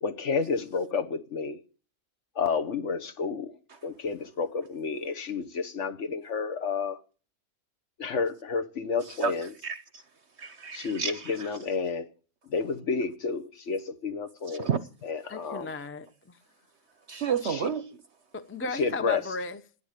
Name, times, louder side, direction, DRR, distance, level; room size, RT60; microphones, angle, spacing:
voice 1, 0.0-1.6 2.3-3.5 3.8-7.0 8.0-9.5 10.7-12.1 12.5-14.7 15.0-15.7 17.4-17.7 18.7-19.2, left 5 dB, 55° left, 1.3 m, -30 dB
voice 2, 9.6-10.0 10.4-11.5 14.5-14.8 17.1-17.9, right 6 dB, 55° right, 0.9 m, -31 dB
voice 3, 15.3-16.4 18.3-19.6, left 3 dB, 10° left, 0.7 m, -35 dB
12.5 x 10.0 x 6.6 m
omnidirectional pair, 1.5 m